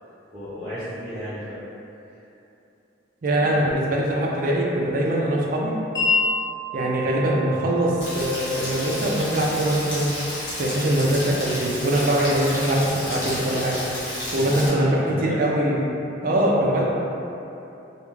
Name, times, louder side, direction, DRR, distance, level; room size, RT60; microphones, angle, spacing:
voice 1, 0.3-1.6 3.4-3.7 14.3-15.4 16.7-16.8, equal, 10° right, -16 dB, 0.8 m, -34 dB
voice 2, 3.2-5.7 6.7-10.1 10.5-13.8 14.3-16.8, right 1 dB, 45° right, -3 dB, 0.4 m, -22 dB
Wind chime, 5.9-12.0, left 3 dB, 15° left, 0.5 m, -31 dB
Rain, 8.0-14.7, left 1 dB, 70° left, 1.0 m, -31 dB
2.4 x 2.3 x 3.0 m, 2.8 s
head